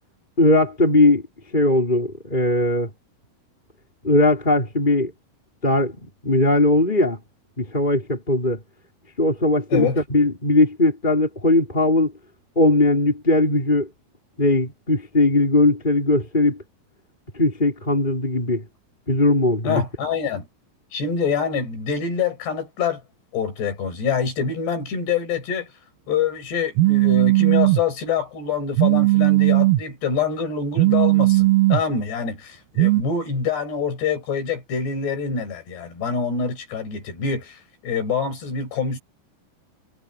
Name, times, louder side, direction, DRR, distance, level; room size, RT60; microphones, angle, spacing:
voice 1, 0.4-1.2 1.5-2.9 4.0-5.1 5.6-6.0 6.2-7.2 7.6-8.6 9.2-12.1 12.5-13.9 14.4-16.6 17.3-18.6 19.1-19.8, left 2 dB, 10° left, 4.3 m, -19 dB
voice 2, 19.6-20.5 20.9-23.0 23.3-25.7 26.1-39.0, left 6 dB, 55° left, 7.6 m, -25 dB
Telephone, 26.8-27.8 28.8-29.8 30.8-31.8 32.8-33.0, right 19 dB, 85° right, 4.5 m, -17 dB
omnidirectional pair, 6.0 m